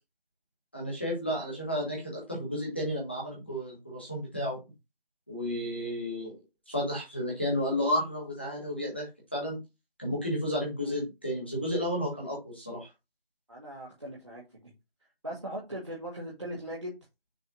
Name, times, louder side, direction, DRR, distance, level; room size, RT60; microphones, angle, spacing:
voice 1, 0.7-4.6 5.3-6.3 6.7-9.1 9.3-9.6 10.0-12.9, equal, 10° left, 1.6 m, -32 dB
voice 2, 13.5-14.7 15.2-16.9, equal, 30° right, 1.6 m, -39 dB
6.5 x 4.1 x 5.2 m
figure-of-eight pair, 175°, 30 cm